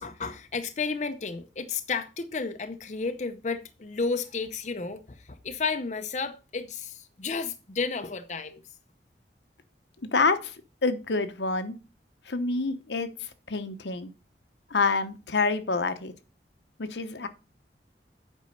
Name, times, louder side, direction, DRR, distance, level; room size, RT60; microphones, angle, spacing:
voice 1, 0.0-8.6, left 4 dB, 40° left, 0.6 m, -32 dB
voice 2, 10.1-10.5 10.8-11.8 12.3-14.1 14.7-16.1 16.8-17.3, left 4 dB, 80° left, 0.9 m, -27 dB
8.3 x 5.4 x 5.3 m
head